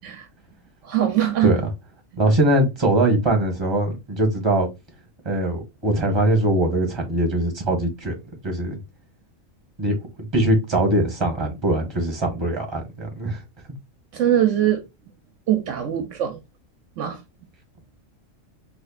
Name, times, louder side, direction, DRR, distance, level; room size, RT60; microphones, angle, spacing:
voice 1, 0.8-1.6 14.1-14.8 15.5-16.4 17.0-17.2, right 11 dB, 70° right, 1.0 m, -22 dB
voice 2, 2.2-4.7 5.2-8.1 8.4-8.8 9.8-10.0 10.3-13.4, right 1 dB, 20° right, 1.3 m, -21 dB
4.2 x 3.1 x 2.3 m
omnidirectional pair, 1.4 m